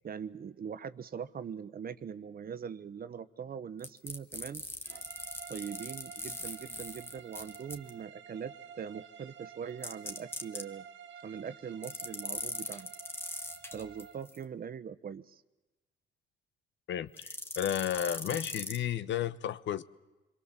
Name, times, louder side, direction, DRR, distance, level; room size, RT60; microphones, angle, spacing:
voice 1, 0.0-4.6 5.5-10.8 11.2-12.9 13.7-15.4, right 7 dB, 50° right, 1.2 m, -42 dB
sound 1, 3.8-7.9 9.8-10.6 11.8-14.4 17.2-18.8, left 1 dB, 10° left, 2.2 m, -40 dB
sound 2, 4.8-14.3, right 8 dB, 70° right, 1.5 m, -51 dB
voice 2, 16.9-19.8, left 10 dB, 70° left, 1.0 m, -33 dB
27.5 x 22.5 x 7.5 m
cardioid pair, 90°, 20 cm